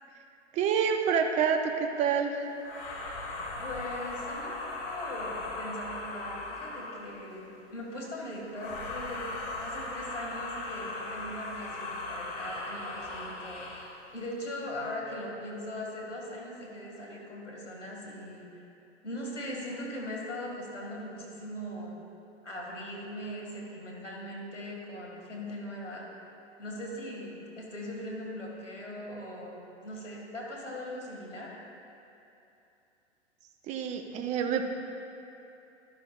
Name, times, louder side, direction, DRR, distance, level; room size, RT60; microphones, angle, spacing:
voice 1, 0.5-2.5 33.7-34.6, right 7 dB, 20° right, 5 dB, 0.6 m, -27 dB
sound 1, 2.6-7.2 8.5-14.0, left 2 dB, 50° left, 1.8 m, -38 dB
voice 2, 3.6-18.6 19.0-22.0 22.4-26.1 26.6-31.6, left 1 dB, 85° left, -2 dB, 2.2 m, -40 dB
12.0 x 11.0 x 2.5 m, 2.8 s
figure-of-eight pair, 110°, 35 cm